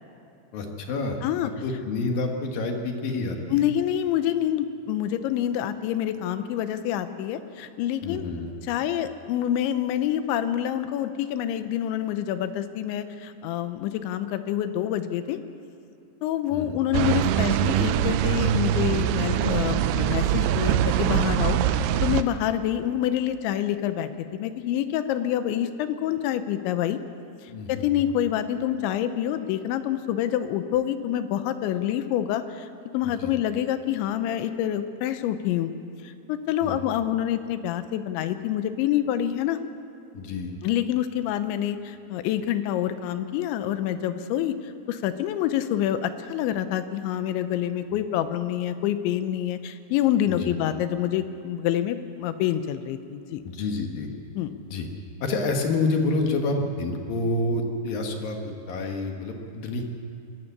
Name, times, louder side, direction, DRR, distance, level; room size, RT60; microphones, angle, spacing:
voice 1, 0.5-1.2 1.4-3.6 8.0-8.5 16.5-16.8 27.5-28.0 33.0-33.3 36.6-36.8 40.1-40.5 50.3-50.6 53.4-54.1 54.7-54.9 55.2-59.9, left 3 dB, 65° left, 3 dB, 2.7 m, -28 dB
voice 2, 3.5-8.2 8.7-15.4 16.2-21.6 22.0-27.0 27.7-32.7 32.9-35.7 36.0-39.6 40.6-53.4 54.4-54.5, left 11 dB, 90° left, 10 dB, 3.2 m, -27 dB
sound 1, 16.9-22.2, right 11 dB, 85° right, 2.3 m, -23 dB
21.5 x 14.5 x 8.4 m, 2.7 s
omnidirectional pair, 5.3 m